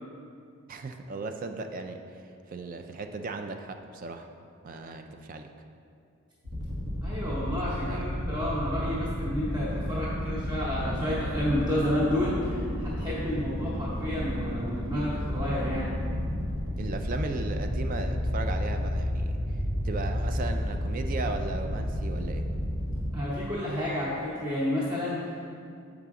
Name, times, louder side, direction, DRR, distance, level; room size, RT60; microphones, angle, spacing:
voice 1, 0.7-2.2 2.5-4.3 4.6-5.5 7.8-8.0 16.8-19.4 19.8-22.4, right 3 dB, 40° right, 6 dB, 0.3 m, -36 dB
sound 1, 6.4-23.1, equal, 90° right, 1.6 m, -31 dB
voice 2, 7.0-16.0 23.1-25.5, left 1 dB, 20° right, -8 dB, 0.8 m, -30 dB
6.9 x 4.9 x 3.6 m, 2.4 s
head